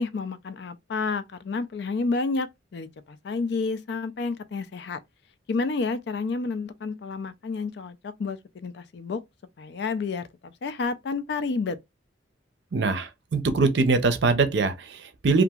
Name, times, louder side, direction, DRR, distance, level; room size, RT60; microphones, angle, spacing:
voice 1, 0.0-5.0 5.5-9.2 9.6-11.8, left 4 dB, 60° left, 0.4 m, -30 dB
voice 2, 12.7-15.4, right 3 dB, 65° right, 0.5 m, -23 dB
2.8 x 2.5 x 2.3 m
head